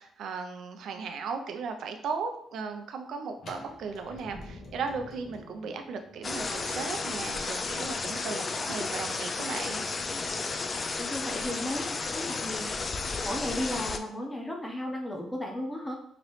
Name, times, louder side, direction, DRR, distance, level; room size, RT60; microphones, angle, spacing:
voice 1, 0.0-9.8, right 5 dB, 70° right, 6 dB, 0.4 m, -36 dB
sound 1, 3.4-9.2, left 2 dB, 60° left, 0.8 m, -50 dB
sound 2, 6.2-14.0, left 4 dB, 35° left, 0.3 m, -33 dB
voice 2, 11.0-12.7 13.2-16.0, left 1 dB, 10° left, 0 dB, 0.8 m, -34 dB
2.9 x 2.9 x 3.1 m, 0.70 s
cardioid pair, 90°, 0 cm